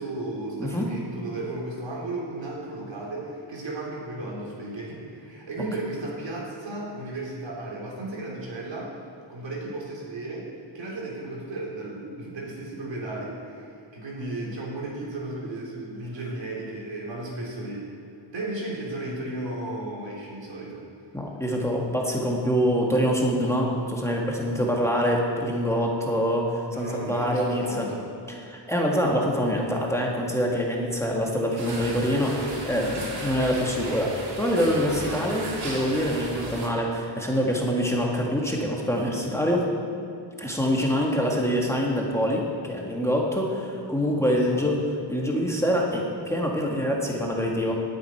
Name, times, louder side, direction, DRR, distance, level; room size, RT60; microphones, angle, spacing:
voice 1, 0.0-8.9 9.3-10.5 10.7-17.9 18.3-20.9 26.7-28.0 44.2-44.7, right 2 dB, 75° right, -4 dB, 3.7 m, -34 dB
voice 2, 21.1-27.9 28.4-39.7 40.4-47.7, equal, 5° left, -2 dB, 1.6 m, -25 dB
sound 1, 31.4-37.1, left 1 dB, 40° left, 2.3 m, -45 dB
sound 2, 31.6-36.7, right 2 dB, 55° right, 2.7 m, -36 dB
18.5 x 9.5 x 4.6 m, 2.6 s
wide cardioid pair, 140°, 45 cm